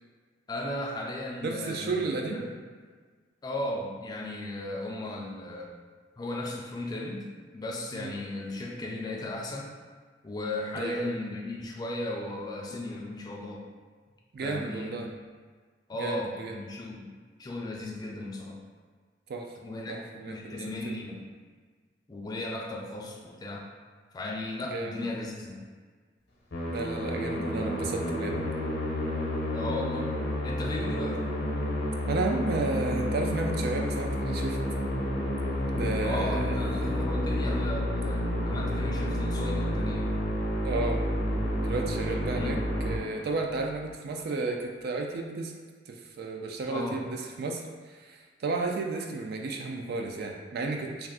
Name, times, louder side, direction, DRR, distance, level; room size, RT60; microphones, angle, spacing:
voice 1, 0.5-2.5 3.4-5.7 6.2-7.3 7.5-9.7 10.2-13.7 14.4-15.0 15.9-17.1 17.4-18.6 19.6-21.3 22.1-23.6 24.1-25.7 29.5-30.1 30.4-31.2 36.0-40.2 42.3-42.6 46.7-47.0, left 1 dB, 20° left, -1 dB, 0.3 m, -36 dB
voice 2, 1.4-2.5 7.9-8.1 10.7-11.1 14.3-15.1 16.0-16.6 19.3-19.5 19.9-21.0 24.6-25.0 26.7-28.4 32.1-34.9 35.7-37.1 40.6-41.0 41.5-42.6 42.8-45.5 45.9-51.1, right 3 dB, 55° right, 2 dB, 0.3 m, -33 dB
Musical instrument, 26.5-43.6, left 1 dB, 65° left, 0.7 m, -30 dB
2.4 x 2.3 x 3.5 m, 1.5 s
head